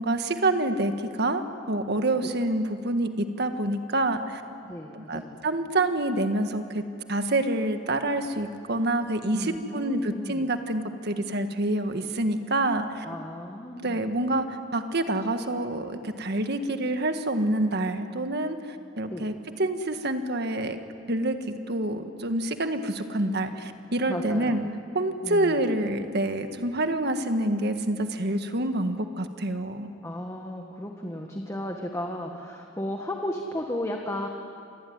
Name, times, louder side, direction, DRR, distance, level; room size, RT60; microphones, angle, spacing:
voice 1, 0.0-4.4 4.9-6.8 7.1-13.0 13.8-20.8 21.1-24.6 24.9-29.9, right 1 dB, 60° right, 7 dB, 1.7 m, -27 dB
voice 2, 4.6-5.4 9.3-10.5 13.0-14.0 19.1-19.3 24.1-24.7 25.2-25.6 30.0-34.3, left 1 dB, 15° left, 2 dB, 1.6 m, -34 dB
26.5 x 20.0 x 9.6 m, 2.5 s
head